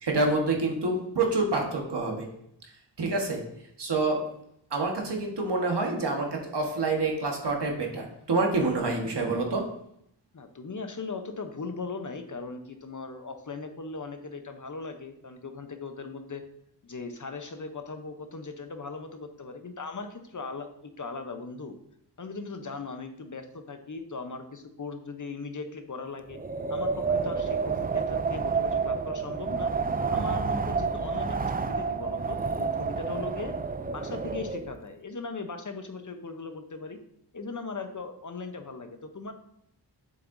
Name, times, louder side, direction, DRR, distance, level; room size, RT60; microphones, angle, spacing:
voice 1, 0.0-2.3 3.0-3.4 3.8-4.2 4.7-9.6, right 3 dB, 75° right, 1 dB, 1.5 m, -27 dB
voice 2, 10.3-16.4 16.8-21.7 22.2-26.4 26.7-29.7 30.1-33.5 33.9-37.0 37.3-39.3, left 4 dB, 45° left, 7 dB, 0.9 m, -38 dB
Wind, 26.3-34.8, right 5 dB, 25° right, 0.4 m, -29 dB
7.6 x 7.1 x 2.7 m, 0.73 s
cardioid pair, 55°, 41 cm